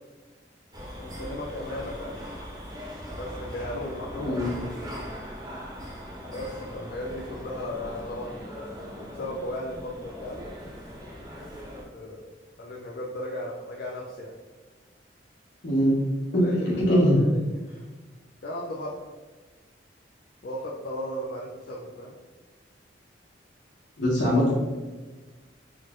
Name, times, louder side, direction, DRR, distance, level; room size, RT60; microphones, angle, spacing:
sound 1, 0.7-11.8, equal, 20° right, 0.9 m, -40 dB
voice 1, 1.0-2.2 3.2-4.5 6.3-8.5 9.0-10.5 11.9-12.3 12.6-14.3 16.3-17.8 18.4-18.9 20.4-22.2, left 1 dB, 55° left, -3 dB, 0.5 m, -36 dB
voice 2, 4.2-4.5 15.6-15.9 16.3-16.4 16.8-17.2 24.0-24.5, equal, 75° left, -5 dB, 1.4 m, -22 dB
3.7 x 2.5 x 3.7 m, 1.3 s
head